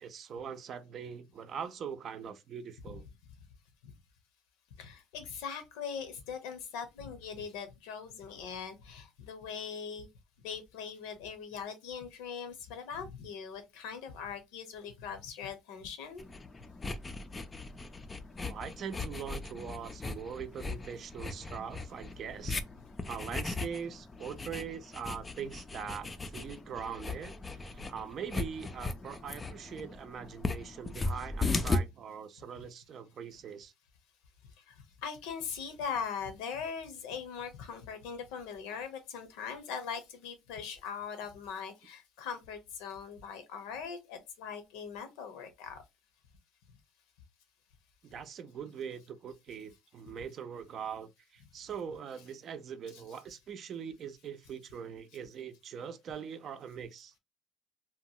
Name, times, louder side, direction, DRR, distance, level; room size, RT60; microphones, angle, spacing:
voice 1, 0.0-3.0 18.5-22.6 23.1-27.3 27.6-33.7 48.0-57.1, right 7 dB, 45° right, 0.5 m, -42 dB
voice 2, 4.8-10.1 10.4-16.3 34.7-34.8 35.0-45.8 52.9-53.0, left 6 dB, 90° left, 0.8 m, -41 dB
sound 1, 16.2-31.8, left 3 dB, 20° left, 0.4 m, -38 dB
2.9 x 2.2 x 2.7 m
cardioid pair, 115°, 0 cm